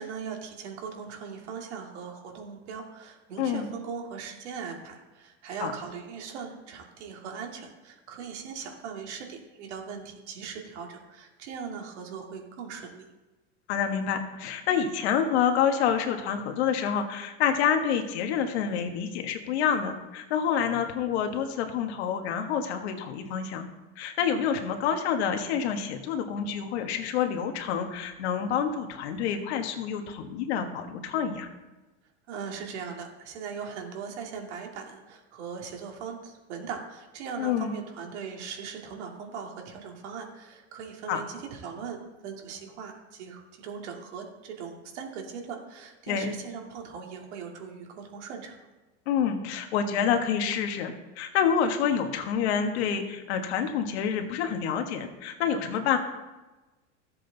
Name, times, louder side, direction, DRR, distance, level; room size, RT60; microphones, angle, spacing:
voice 1, 0.0-13.1 32.3-42.0 42.2-48.6, right 6 dB, 70° right, 1 dB, 2.3 m, -39 dB
voice 2, 3.4-3.7 5.6-5.7 13.7-23.6 24.0-31.5 37.4-37.7 41.1-41.2 46.1-46.3 49.1-56.0, left 8 dB, 65° left, 5 dB, 1.4 m, -28 dB
14.0 x 7.7 x 4.0 m, 1.1 s
supercardioid pair, 175°, 35 cm